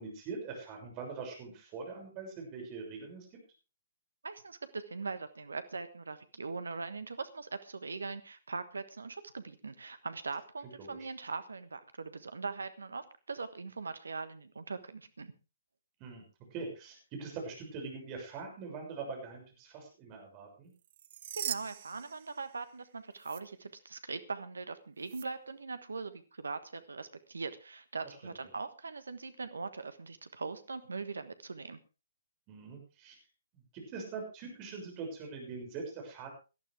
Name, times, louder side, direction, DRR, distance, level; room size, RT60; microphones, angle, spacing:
voice 1, 0.0-3.3 10.8-11.0 16.0-16.2 16.5-20.7 28.2-28.3 32.5-33.2 33.5-36.3, right 4 dB, 30° right, 2 dB, 6.5 m, -43 dB
voice 2, 4.2-15.3 21.4-31.8, right 4 dB, 70° right, 11 dB, 1.3 m, -41 dB
sound 1, 20.8-22.8 23.2-23.4 25.0-25.3, right 11 dB, 45° right, 0.9 m, -41 dB
18.5 x 12.5 x 3.5 m, 0.32 s
figure-of-eight pair, 130°, 0 cm